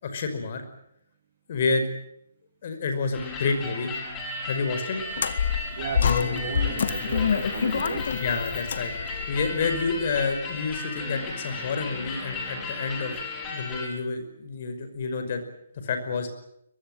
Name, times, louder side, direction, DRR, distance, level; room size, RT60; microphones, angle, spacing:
voice 1, 0.0-0.6 1.5-1.9 2.6-3.9 4.5-5.0 8.1-8.9 9.3-13.1 13.5-15.4 15.8-16.3, left 4 dB, 40° left, 5.4 m, -28 dB
sound 1, 3.1-13.9, left 3 dB, 15° left, 5.2 m, -35 dB
sound 2, 5.1-10.4, left 7 dB, 55° left, 1.9 m, -27 dB
voice 2, 5.8-8.1, right 8 dB, 40° right, 1.6 m, -35 dB
23.0 x 22.0 x 9.3 m
hypercardioid pair, 170°, 0 cm